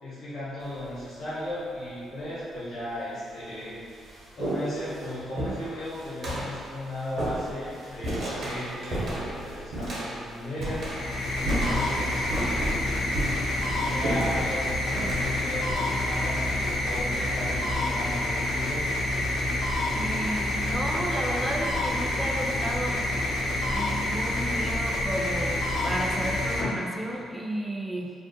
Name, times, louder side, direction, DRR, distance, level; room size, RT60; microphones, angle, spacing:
voice 1, 0.0-3.8 4.4-10.8 11.5-13.0 13.8-18.9, left 1 dB, 70° left, -10 dB, 0.9 m, -36 dB
sound 1, 0.6-1.0 2.0-2.1 2.9-3.0 3.4-16.9, right 1 dB, 65° right, 0.7 m, -33 dB
sound 2, 10.7-27.3, left 1 dB, 90° left, 0.4 m, -28 dB
voice 2, 19.9-23.0 23.7-28.1, right 1 dB, 10° right, 0 dB, 0.3 m, -33 dB
2.5 x 2.0 x 2.6 m, 2.2 s
cardioid pair, 90°, 0 cm